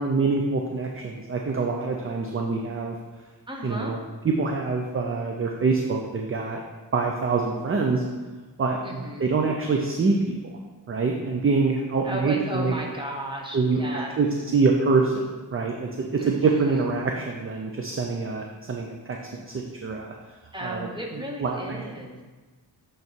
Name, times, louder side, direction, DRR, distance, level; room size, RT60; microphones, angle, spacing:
voice 1, 0.0-3.0 3.6-4.0 4.2-6.6 6.9-8.0 8.6-10.6 10.9-12.7 13.5-14.3 14.5-15.2 15.5-20.1 20.6-20.9 21.1-21.8, right 4 dB, 30° right, 1 dB, 0.5 m, -25 dB
voice 2, 3.5-4.0 8.8-9.3 12.0-14.2 16.2-16.8 20.5-22.2, right 1 dB, 10° right, 0 dB, 1.0 m, -35 dB
8.1 x 3.3 x 4.5 m, 1.3 s
wide cardioid pair, 105°, 43 cm